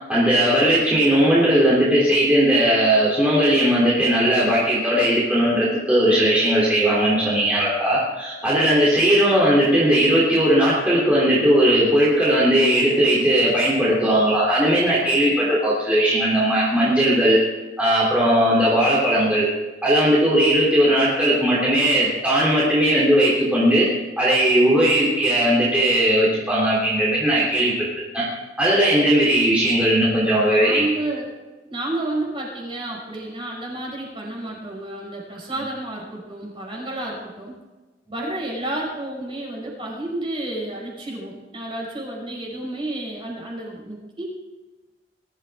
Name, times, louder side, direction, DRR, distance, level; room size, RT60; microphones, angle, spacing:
voice 1, 0.1-17.4 17.8-19.5 19.8-23.9 24.2-27.7 28.1-28.2 28.6-30.9, right 1 dB, 10° right, -7 dB, 3.3 m, -18 dB
voice 2, 30.4-31.3 31.7-37.6 38.1-44.2, right 1 dB, 30° right, -3 dB, 5.8 m, -30 dB
21.5 x 13.5 x 3.7 m, 1.2 s
head